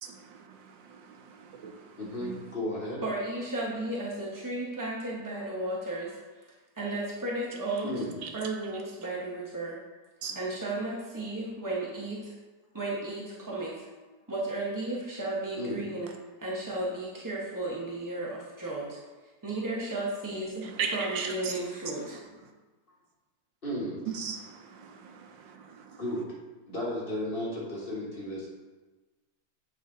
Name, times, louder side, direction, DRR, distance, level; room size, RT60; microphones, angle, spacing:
voice 1, 0.0-2.5 7.7-7.8 8.2-8.4 10.2-10.4 20.6-22.3 24.1-26.0, right 6 dB, 80° right, 4 dB, 1.4 m, -39 dB
voice 2, 2.0-3.0 5.4-5.5 7.8-8.3 15.6-15.8 23.6-24.1 26.0-26.2 26.7-28.5, left 1 dB, 30° left, -6 dB, 1.6 m, -34 dB
voice 3, 3.0-6.5 6.8-7.9 8.3-9.8 10.4-12.3 12.7-13.9 14.3-16.1 16.4-19.0 19.4-22.2, right 2 dB, 30° right, -4 dB, 0.3 m, -34 dB
8.3 x 4.0 x 3.8 m, 1.2 s
omnidirectional pair, 2.0 m